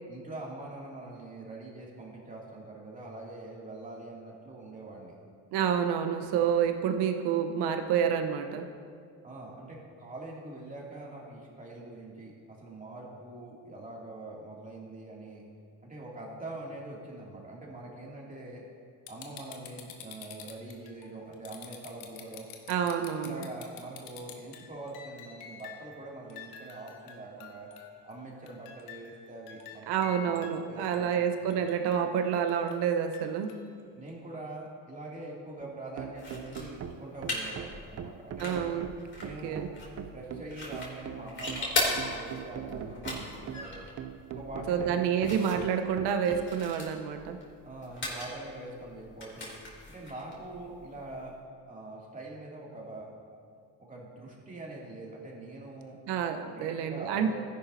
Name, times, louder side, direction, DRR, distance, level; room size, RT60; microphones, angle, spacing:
voice 1, 0.1-5.2 9.2-15.4 15.8-18.7 19.1-22.4 23.2-27.7 28.0-30.3 30.7-31.3 33.9-38.6 39.2-39.7 40.1-43.9 44.3-45.4 47.6-49.5 49.9-51.3 51.7-53.1 53.8-56.0 56.6-57.3, right 2 dB, 20° right, -3 dB, 2.7 m, -44 dB
voice 2, 5.5-8.7 22.7-23.4 29.9-33.5 38.4-38.9 39.4-39.7 44.7-47.4 56.1-57.3, right 8 dB, 70° right, 6 dB, 1.1 m, -28 dB
sound 1, 19.1-26.0 26.3-28.1 28.5-30.6 30.9-31.0 31.5-33.7 34.1-34.2, left 8 dB, 90° left, 1.1 m, -48 dB
sound 2, 35.6-46.5, right 8 dB, 40° right, 0.6 m, -42 dB
sound 3, 36.2-51.3, left 2 dB, 25° left, 2.9 m, -39 dB
13.5 x 10.5 x 2.8 m, 2.1 s
supercardioid pair, 95°, 42 cm